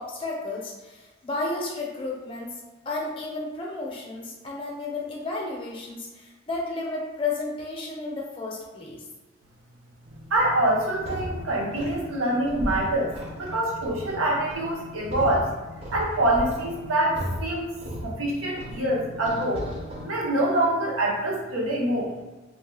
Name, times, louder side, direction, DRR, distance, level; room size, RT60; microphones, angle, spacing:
voice 1, 0.0-2.5 2.9-9.0, left 3 dB, 25° left, -2 dB, 0.5 m, -32 dB
sound 1, 10.1-20.0, left 1 dB, 30° right, 0.5 m, -36 dB
voice 2, 10.3-15.5 15.9-17.7 18.0-19.6 20.0-22.1, right 1 dB, 85° right, -2 dB, 0.7 m, -25 dB
2.7 x 2.1 x 3.4 m, 1.2 s
head